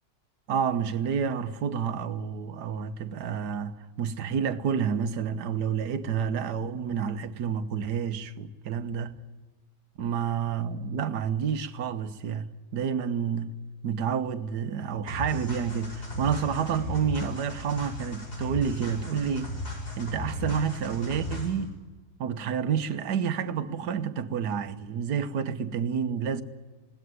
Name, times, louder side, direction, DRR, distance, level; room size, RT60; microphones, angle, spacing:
voice 1, 0.5-9.1 10.0-12.5 12.7-13.5 13.8-19.5 20.0-21.7 22.2-26.4, right 7 dB, 70° right, 1.6 m, -29 dB
sound 1, 15.1-21.7, left 1 dB, 65° left, 5.6 m, -36 dB
20.5 x 17.0 x 9.6 m
omnidirectional pair, 1.8 m